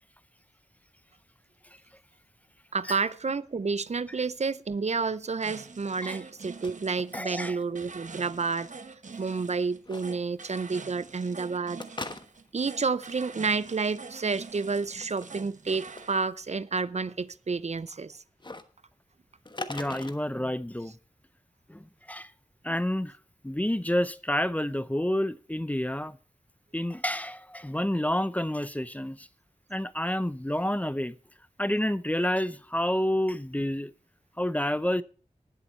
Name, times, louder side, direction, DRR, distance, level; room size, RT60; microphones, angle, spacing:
voice 1, 2.7-8.7 9.2-11.8 12.5-18.2, right 4 dB, 60° right, 0.5 m, -30 dB
sound 1, 5.4-16.2, right 4 dB, 75° right, 1.0 m, -45 dB
sound 2, 6.4-6.7 7.0-7.6 7.9-8.0 9.8-10.0 11.8-12.6 14.9-15.3 15.7-16.0 18.4-18.6 19.5-20.2, left 2 dB, 35° left, 1.2 m, -39 dB
voice 2, 7.1-7.6 19.7-20.9 21.7-22.3 22.6-23.1 23.4-26.2 26.7-29.3 29.7-31.1 31.6-33.9 34.4-35.0, left 1 dB, 10° left, 0.6 m, -29 dB
19.5 x 7.1 x 4.4 m
wide cardioid pair, 65°, 13 cm